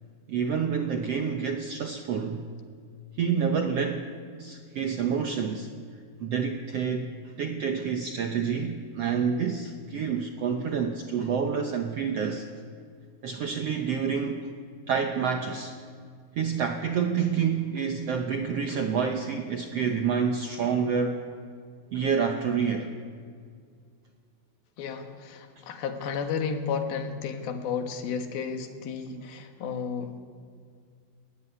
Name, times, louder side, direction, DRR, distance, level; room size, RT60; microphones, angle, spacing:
voice 1, 0.3-2.4 3.2-4.1 4.4-5.7 6.2-7.1 7.4-12.4 13.2-14.5 14.9-15.8 16.4-21.2 21.9-22.9 29.1-29.2, right 6 dB, 75° right, 4 dB, 1.4 m, -28 dB
voice 2, 24.8-30.1, left 6 dB, 85° left, 5 dB, 3.4 m, -32 dB
21.0 x 14.0 x 10.0 m, 2.1 s
omnidirectional pair, 4.2 m